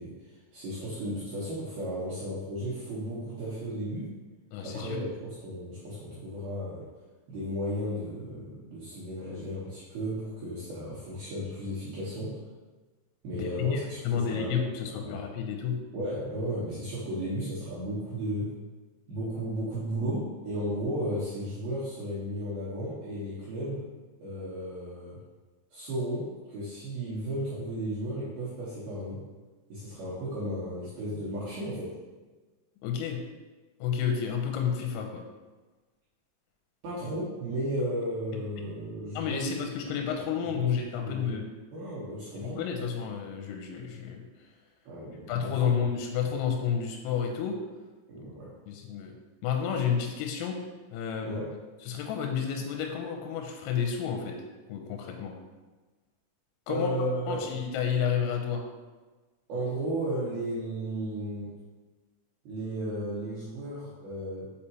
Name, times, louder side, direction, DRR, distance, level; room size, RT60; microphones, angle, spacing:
voice 1, 0.0-4.1 4.6-6.9 7.3-12.4 13.2-14.5 15.0-15.2 15.9-18.5 19.1-23.8 24.2-25.2 25.7-29.2 29.7-32.0 36.8-39.5 40.4-40.7 41.0-41.4 41.7-42.6 44.9-45.6 46.2-46.3 48.1-48.5 51.2-51.5 56.7-57.4 59.5-61.5 62.4-64.5, right 1 dB, 80° right, -9 dB, 2.2 m, -34 dB
voice 2, 4.5-5.0 13.3-13.8 14.1-15.8 32.8-33.2 33.8-35.2 39.2-41.5 42.4-44.2 45.3-47.6 48.7-49.1 49.4-50.6 50.9-51.4 51.8-54.4 54.7-55.3 56.7-56.9 57.3-58.6, left 7 dB, 90° left, 3 dB, 3.3 m, -30 dB
6.7 x 5.0 x 2.8 m, 1.3 s
omnidirectional pair, 6.0 m